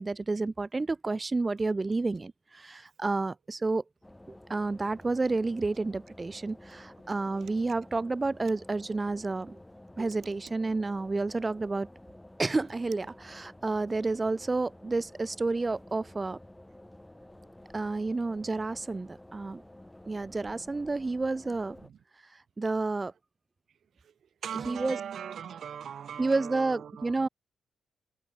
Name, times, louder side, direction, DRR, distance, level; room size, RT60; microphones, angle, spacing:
voice 1, 0.0-3.8 4.3-9.6 10.0-11.9 12.4-16.4 17.7-19.6 20.1-21.8 22.3-23.1 24.5-25.0 26.2-27.3, right 3 dB, 25° right, 0.5 m, -30 dB
sound 1, 4.0-21.9, left 1 dB, 10° left, 2.0 m, -52 dB
voice 2, 24.4-27.3, right 8 dB, 70° right, 0.8 m, -39 dB
cardioid pair, 75°, 0 cm